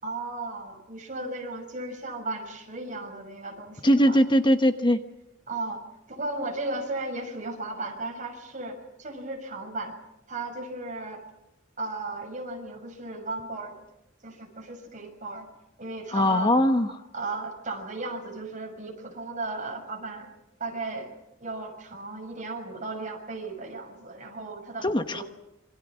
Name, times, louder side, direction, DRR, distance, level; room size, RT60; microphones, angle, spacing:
voice 1, 0.0-4.2 5.5-5.8 6.1-9.9 10.3-11.2 11.8-13.7 14.2-15.5 15.8-16.5 17.1-20.3 20.6-21.1 21.4-25.2, right 2 dB, 40° right, 3 dB, 6.5 m, -35 dB
voice 2, 3.8-5.0 16.1-16.9 24.8-25.2, equal, 25° left, 8 dB, 1.1 m, -21 dB
27.0 x 24.5 x 6.2 m, 0.91 s
head